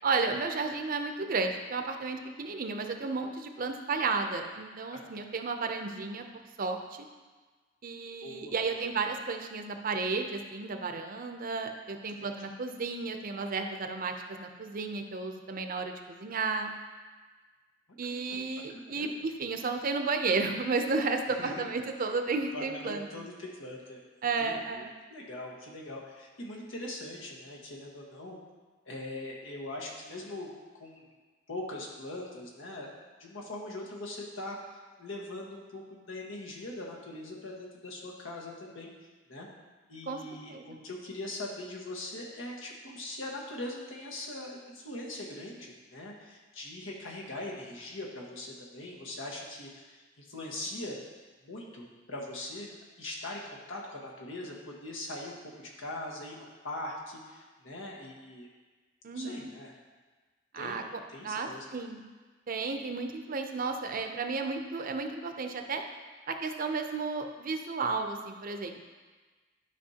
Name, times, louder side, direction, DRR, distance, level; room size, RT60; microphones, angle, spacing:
voice 1, 0.0-6.2 6.6-7.1 7.8-14.1 14.4-16.7 18.0-23.1 24.2-24.9 40.1-40.2 40.5-40.8 59.0-59.5 60.5-60.8 61.2-62.0 62.5-65.8 66.3-68.8, right 4 dB, 45° right, 5 dB, 0.6 m, -33 dB
voice 2, 8.2-8.8 18.1-18.3 18.7-19.1 21.3-21.6 22.5-24.0 24.4-28.4 28.9-31.0 31.5-32.9 33.2-38.9 39.3-39.5 39.9-51.0 51.4-52.7 53.0-58.5 59.1-59.7 60.5-61.6, left 1 dB, 90° left, -2 dB, 1.4 m, -41 dB
11.5 x 5.3 x 2.8 m, 1.3 s
head